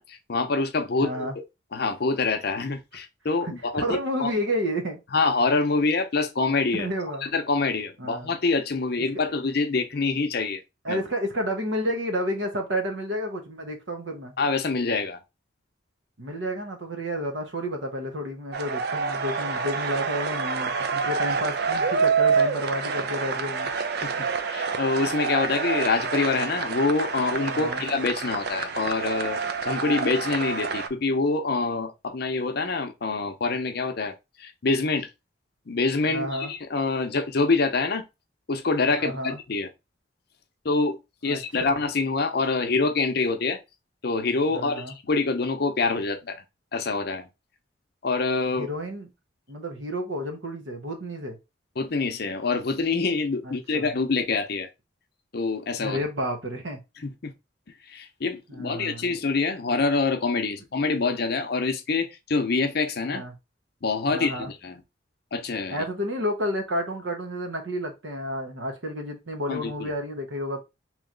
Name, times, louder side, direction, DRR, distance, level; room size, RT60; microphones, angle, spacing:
voice 1, 0.0-1.3 1.7-4.3 5.1-6.9 7.2-10.6 10.9-11.0 14.4-15.2 20.9-21.0 24.0-35.1 35.7-38.0 38.5-39.7 40.6-43.6 44.0-46.4 46.7-47.3 48.0-48.7 51.8-54.7 55.3-56.0 57.0-57.3 57.9-63.2 63.8-64.8 65.3-65.8 69.5-69.9, left 3 dB, 55° left, 0.6 m, -26 dB
voice 2, 1.0-1.3 3.4-5.0 6.7-7.4 8.0-8.3 10.8-14.3 16.2-20.7 21.1-23.7 27.5-27.8 36.1-36.5 39.0-39.4 41.3-41.8 44.5-44.9 48.6-49.1 49.5-51.4 53.4-53.9 55.8-56.8 58.5-59.2 63.1-63.3 64.1-64.5 65.7-70.6, equal, 70° right, 1.1 m, -31 dB
sound 1, 18.5-30.9, right 5 dB, 55° right, 0.4 m, -27 dB
3.1 x 3.0 x 3.7 m
head